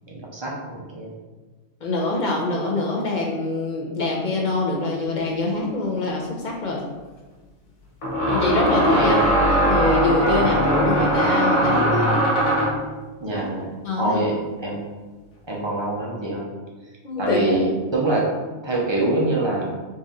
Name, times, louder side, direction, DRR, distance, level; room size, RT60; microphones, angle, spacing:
voice 1, 0.3-1.1 8.9-9.2 13.2-13.7 14.0-14.4 14.6-14.8 15.5-16.5 17.2-18.3 18.6-19.7, right 2 dB, 30° right, -3 dB, 0.6 m, -24 dB
voice 2, 1.8-6.8 8.3-9.2 9.5-12.1 13.3-13.4 13.8-14.2 17.0-17.6, left 2 dB, 50° left, -2 dB, 0.7 m, -24 dB
sound 1, 6.1-6.2 8.0-12.9, equal, 75° left, 1.1 m, -20 dB
4.0 x 2.6 x 3.6 m, 1.3 s
omnidirectional pair, 1.3 m